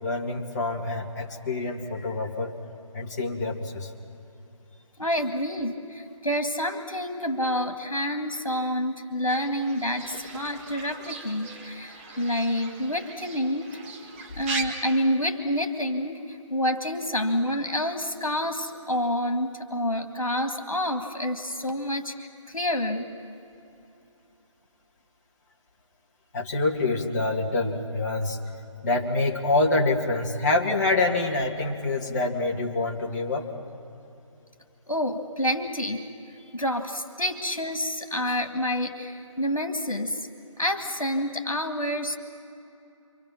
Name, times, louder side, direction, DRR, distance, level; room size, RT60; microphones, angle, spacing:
voice 1, 0.0-2.5 2.9-3.9 26.3-28.4 28.8-33.5, left 2 dB, 30° left, -1 dB, 2.3 m, -26 dB
voice 2, 5.0-13.7 14.3-23.1 34.9-36.1 36.5-40.3 40.6-42.2, left 1 dB, 85° left, 5 dB, 2.0 m, -28 dB
Fowl / Bird, 9.3-14.7, right 4 dB, 25° right, 1.8 m, -39 dB
28.0 x 25.0 x 5.9 m, 2.8 s
figure-of-eight pair, 150°, 17 cm